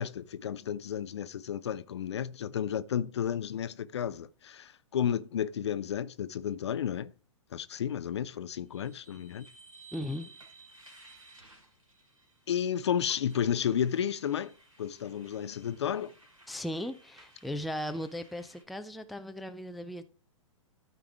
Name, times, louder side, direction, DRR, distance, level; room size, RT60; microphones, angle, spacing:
voice 1, 0.0-7.1 7.5-9.5 12.5-14.5 14.8-16.1, left 9 dB, 55° left, 0.6 m, -32 dB
sound 1, 8.7-18.6, right 3 dB, 80° right, 2.6 m, -57 dB
voice 2, 9.9-10.3 16.5-20.0, left 1 dB, ahead, 0.4 m, -37 dB
13.5 x 4.7 x 3.5 m
figure-of-eight pair, 110°, 17 cm